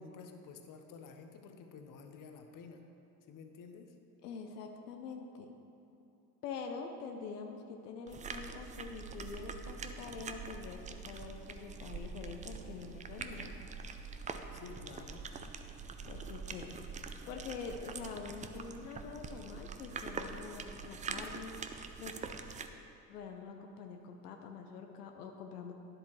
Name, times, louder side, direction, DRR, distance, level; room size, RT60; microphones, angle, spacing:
voice 1, 0.0-2.8 3.3-3.9 14.5-15.3, left 5 dB, 45° left, 5 dB, 0.9 m, -51 dB
voice 2, 4.2-5.5 6.4-13.5 16.1-22.1 23.1-25.7, left 5 dB, 90° left, 4 dB, 0.7 m, -45 dB
sound 1, 8.1-22.7, right 5 dB, 20° right, 0.3 m, -44 dB
10.0 x 7.7 x 3.1 m, 3.0 s
hypercardioid pair, 75°, 46 cm